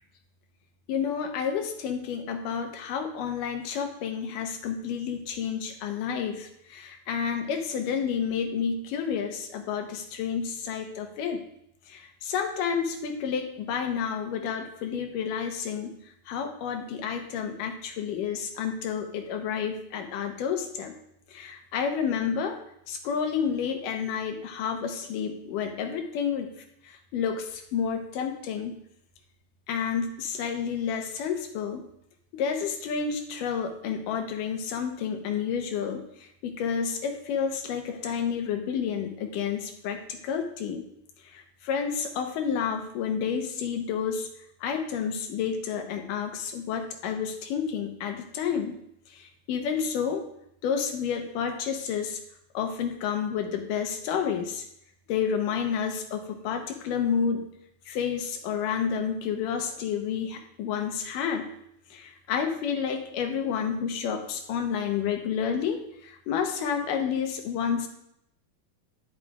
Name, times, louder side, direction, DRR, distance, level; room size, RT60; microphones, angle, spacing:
voice 1, 0.9-11.4 11.9-15.9 16.3-20.9 21.3-22.6 22.9-26.5 26.8-28.7 29.7-31.8 32.3-40.8 41.3-44.3 44.6-48.8 49.1-50.2 50.6-52.2 52.5-54.6 55.1-57.5 57.9-61.5 61.9-67.9, left 7 dB, 85° left, 4 dB, 2.5 m, -30 dB
9.9 x 9.1 x 2.4 m, 0.75 s
omnidirectional pair, 3.7 m